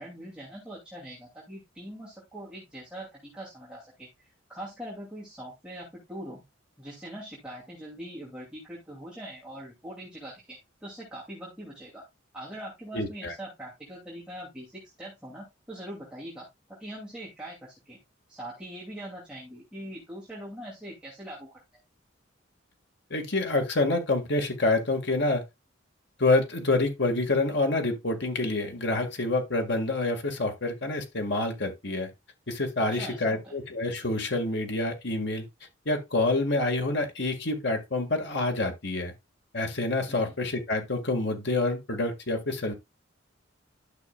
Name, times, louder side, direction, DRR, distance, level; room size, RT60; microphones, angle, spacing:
voice 1, 0.0-6.4 6.8-12.0 12.3-16.5 16.8-18.0 18.3-21.6 32.9-33.6 40.1-40.4, right 1 dB, 5° right, 2.6 m, -42 dB
voice 2, 12.9-13.3 23.1-25.4 26.2-32.1 32.5-35.4 35.9-39.1 39.5-42.7, left 2 dB, 60° left, 1.8 m, -27 dB
12.0 x 5.9 x 2.4 m
head